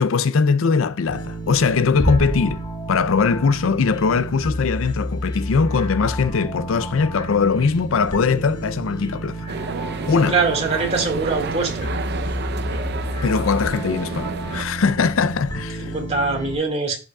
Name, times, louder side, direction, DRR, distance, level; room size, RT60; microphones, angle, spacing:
voice 1, 0.0-2.6 2.9-9.5 10.1-10.4 13.2-15.9, left 5 dB, 80° left, 0.5 m, -20 dB
sound 1, 1.1-16.6, right 1 dB, 20° left, 1.4 m, -31 dB
Bass drum, 2.0-3.4, equal, 5° right, 1.2 m, -26 dB
sound 2, 9.5-14.6, right 4 dB, 55° right, 0.6 m, -30 dB
voice 2, 10.3-11.9 15.8-17.0, right 3 dB, 30° right, 2.1 m, -23 dB
11.5 x 5.0 x 2.3 m
head